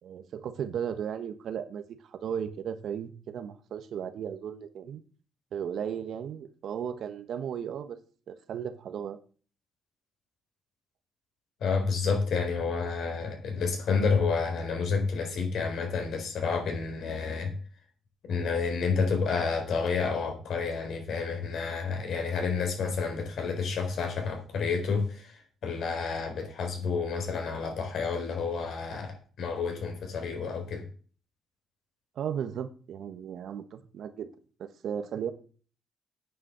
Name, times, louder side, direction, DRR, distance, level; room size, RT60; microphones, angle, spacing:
voice 1, 0.0-5.0 5.5-8.0 8.3-9.2 32.1-34.3 34.6-35.3, right 8 dB, 70° right, 1.2 m, -35 dB
voice 2, 11.6-17.5 18.3-30.9, left 5 dB, 70° left, 4.2 m, -30 dB
9.3 x 7.3 x 6.8 m
cardioid pair, 90°, 0 cm